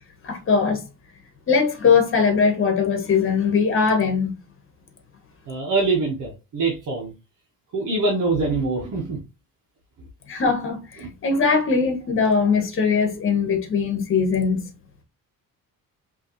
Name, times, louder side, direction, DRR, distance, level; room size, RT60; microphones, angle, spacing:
voice 1, 0.2-0.8 1.5-4.3 10.3-10.8 11.2-14.7, left 5 dB, 35° left, 1.3 m, -20 dB
voice 2, 5.5-7.1 7.7-9.2 11.0-11.1, right 3 dB, 60° right, 1.5 m, -24 dB
5.5 x 3.1 x 3.1 m
cardioid pair, 165°, 35 cm